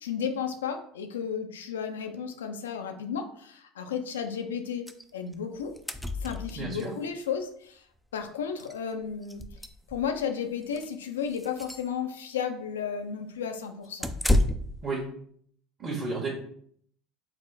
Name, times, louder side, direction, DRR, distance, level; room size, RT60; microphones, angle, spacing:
voice 1, 0.0-5.7 6.2-7.8 8.1-9.4 9.9-14.1, left 7 dB, 90° left, 6 dB, 0.5 m, -33 dB
sound 1, 4.9-5.0 5.3-5.4 5.6-6.9 8.1-8.2 8.6-8.7 9.2-10.2 10.7-10.9 11.3-11.9 14.0-14.8, left 1 dB, ahead, 0.4 m, -29 dB
voice 2, 6.5-6.9 14.8-15.0 15.8-16.3, right 3 dB, 30° right, -4 dB, 1.3 m, -32 dB
4.0 x 2.1 x 4.0 m, 0.63 s
hypercardioid pair, 80°, 0 cm